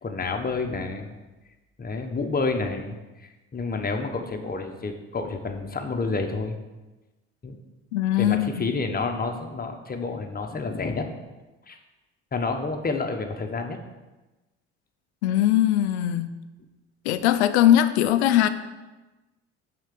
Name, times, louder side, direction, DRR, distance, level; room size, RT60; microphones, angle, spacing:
voice 1, 0.0-1.1 1.8-6.6 7.4-7.6 8.2-11.1 11.7-11.8 12.3-13.8, left 4 dB, 30° left, 4 dB, 1.3 m, -29 dB
voice 2, 7.9-8.7 15.2-16.3 17.0-18.5, left 12 dB, 85° left, 12 dB, 0.6 m, -20 dB
6.4 x 4.6 x 6.7 m, 1.1 s
hypercardioid pair, 65°, 32 cm